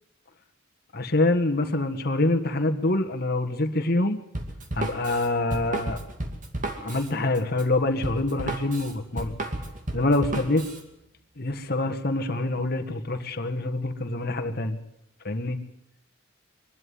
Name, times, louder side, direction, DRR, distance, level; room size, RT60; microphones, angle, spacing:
voice 1, 0.9-4.2 4.7-6.0 6.8-9.4 9.9-10.6 11.4-14.8 15.2-15.6, left 2 dB, 50° left, 7 dB, 1.7 m, -25 dB
Drum kit, 4.3-10.8, right 1 dB, 40° right, 2.4 m, -33 dB
23.5 x 12.0 x 9.7 m, 0.82 s
head